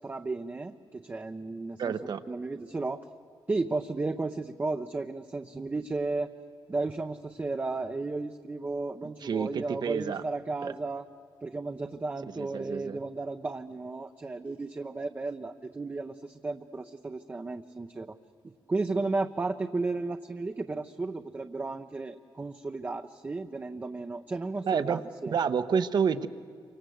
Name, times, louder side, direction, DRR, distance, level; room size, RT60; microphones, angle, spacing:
voice 1, 0.0-1.9 2.3-3.0 3.5-6.3 6.7-11.0 11.4-18.2 18.7-25.3, right 3 dB, 20° right, 6 dB, 0.7 m, -34 dB
voice 2, 1.8-2.2 9.0-10.2 10.6-10.7 12.4-13.0 24.6-26.3, right 6 dB, 60° right, 11 dB, 1.0 m, -29 dB
28.5 x 25.5 x 7.8 m, 2.3 s
wide cardioid pair, 155°, 8 cm